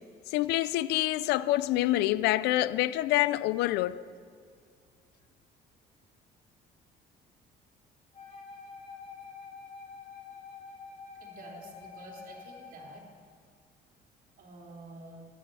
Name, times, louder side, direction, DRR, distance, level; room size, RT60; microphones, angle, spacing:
voice 1, 0.3-4.0, left 15 dB, 85° left, 0.5 m, -26 dB
Wind instrument woodwind instrument, 8.1-13.0, left 5 dB, 35° left, 2.2 m, -47 dB
voice 2, 11.2-13.1 14.4-15.3, right 2 dB, 55° right, 3.4 m, -48 dB
15.5 x 11.0 x 7.0 m
cardioid pair, 110°, 17 cm